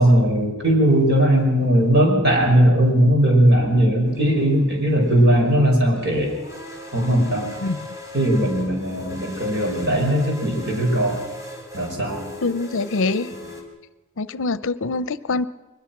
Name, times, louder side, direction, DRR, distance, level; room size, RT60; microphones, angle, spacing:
voice 1, 0.0-6.3 6.9-7.5 8.1-11.3 11.7-12.3 13.4-13.5, right 1 dB, 50° right, 1 dB, 5.9 m, -18 dB
sound 1, 4.1-13.6, left 1 dB, 15° right, 3.5 m, -39 dB
voice 2, 12.4-13.3 14.2-15.5, left 3 dB, 60° left, 16 dB, 0.7 m, -24 dB
22.5 x 20.5 x 6.0 m, 1.1 s
head